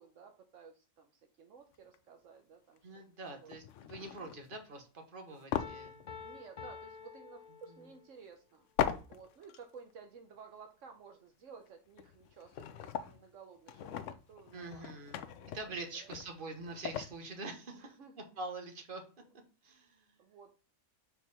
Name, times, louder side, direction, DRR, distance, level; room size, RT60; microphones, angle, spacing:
voice 1, 0.0-2.9 3.4-3.6 6.2-8.6 9.1-16.1 17.7-18.3 20.2-20.6, right 5 dB, 75° right, 5 dB, 1.2 m, -55 dB
sound 1, 1.7-2.0 2.8-3.0 3.5-4.6 5.5-6.7 7.0-7.1 8.8-9.6 9.9-10.0 11.7-11.8 12.0-13.3 13.7-17.2, left 9 dB, 75° left, 0.9 m, -39 dB
voice 2, 2.8-6.0 14.5-15.2 15.5-19.0 19.6-20.1, right 2 dB, 45° right, 4 dB, 1.4 m, -45 dB
Piano, 5.6-8.1, left 6 dB, 45° left, 0.7 m, -49 dB
4.6 x 4.5 x 5.5 m, 0.35 s
omnidirectional pair, 1.3 m